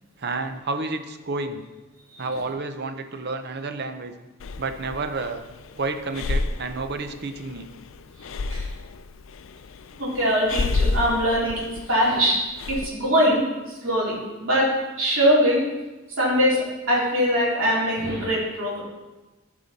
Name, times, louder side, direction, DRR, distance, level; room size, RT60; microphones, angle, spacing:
voice 1, 0.2-1.6 2.2-4.1 4.6-5.4 5.8-7.7, right 3 dB, 55° right, 8 dB, 0.7 m, -30 dB
Breathing, 4.4-12.9, left 3 dB, 70° left, 0.4 m, -30 dB
voice 2, 10.0-11.6 11.9-12.4 12.7-14.7 15.0-15.7 16.2-18.8, equal, 80° right, -7 dB, 3.0 m, -22 dB
12.5 x 4.9 x 4.1 m, 1.1 s
head